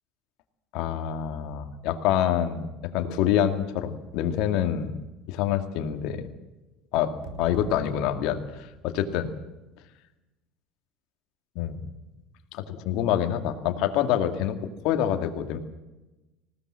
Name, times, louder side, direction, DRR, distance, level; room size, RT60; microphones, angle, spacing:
voice 1, 0.7-2.7 2.9-4.9 5.3-6.3 6.9-7.1 7.4-9.3 11.6-11.8 12.5-15.6, left 10 dB, 65° left, 7 dB, 2.2 m, -26 dB
sound 1, 6.9-9.2, right 2 dB, 70° right, 4.1 m, -43 dB
20.0 x 17.0 x 7.6 m, 1.1 s
hypercardioid pair, 80°, 0 cm